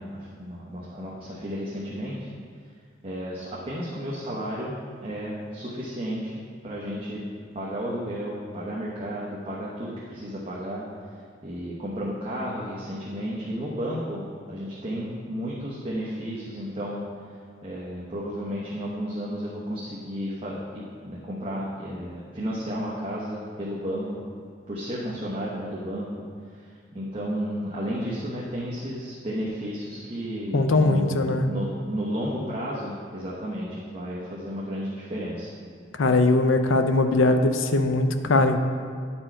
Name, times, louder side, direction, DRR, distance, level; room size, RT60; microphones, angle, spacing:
voice 1, 0.0-2.3 3.0-7.3 7.5-10.8 11.4-17.0 17.6-24.2 24.7-26.1 26.5-35.5, equal, 30° right, -6 dB, 0.9 m, -33 dB
voice 2, 30.5-31.5 36.0-38.6, left 2 dB, 85° left, 8 dB, 0.6 m, -20 dB
10.0 x 4.4 x 4.4 m, 2.1 s
head